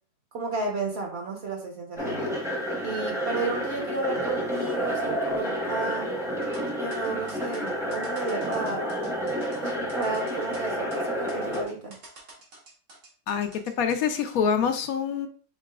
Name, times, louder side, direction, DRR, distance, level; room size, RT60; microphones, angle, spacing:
voice 1, 0.3-2.4 2.8-6.1 6.8-8.9 9.6-12.0, right 3 dB, 50° right, 2 dB, 1.0 m, -33 dB
sound 1, 2.0-11.6, equal, 5° right, 0.7 m, -30 dB
sound 2, 6.4-14.4, right 2 dB, 85° right, 2.0 m, -49 dB
voice 2, 13.8-15.3, left 7 dB, 70° left, 7 dB, 1.0 m, -25 dB
5.6 x 3.8 x 2.3 m, 0.41 s
omnidirectional pair, 1.6 m